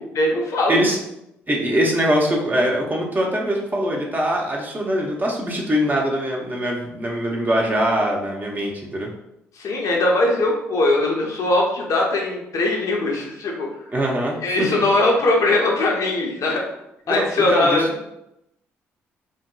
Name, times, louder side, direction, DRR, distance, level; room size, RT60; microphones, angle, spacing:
voice 1, 0.2-0.8 9.6-13.7 14.4-16.6 17.1-17.9, left 2 dB, 55° left, 0 dB, 0.6 m, -20 dB
voice 2, 0.7-1.0 1.5-9.1 13.9-14.8 17.1-17.9, equal, 30° right, -1 dB, 0.7 m, -22 dB
2.8 x 2.6 x 2.2 m, 0.83 s
hypercardioid pair, 45°, 7 cm